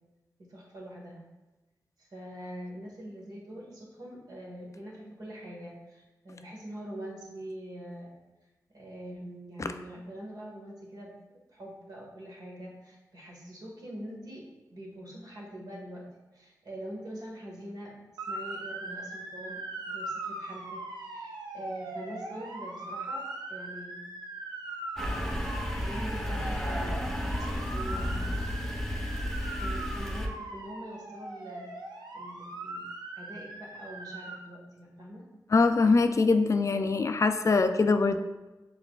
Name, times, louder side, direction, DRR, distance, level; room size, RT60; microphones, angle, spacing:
voice 1, 0.4-1.2 2.0-8.1 8.7-11.1 11.5-14.4 14.7-16.1 16.3-19.6 19.9-23.2 23.5-24.0 25.0-28.4 29.6-31.7 32.1-32.9 33.1-35.2, right 1 dB, 70° right, -3 dB, 1.4 m, -44 dB
Motor vehicle (road) / Siren, 18.2-34.4, right 2 dB, 85° right, 0.5 m, -40 dB
sound 1, 25.0-30.3, equal, 5° left, 0.8 m, -32 dB
voice 2, 35.5-38.2, left 3 dB, 45° left, 8 dB, 0.3 m, -23 dB
5.7 x 3.8 x 2.3 m, 1.1 s
cardioid pair, 45°, 7 cm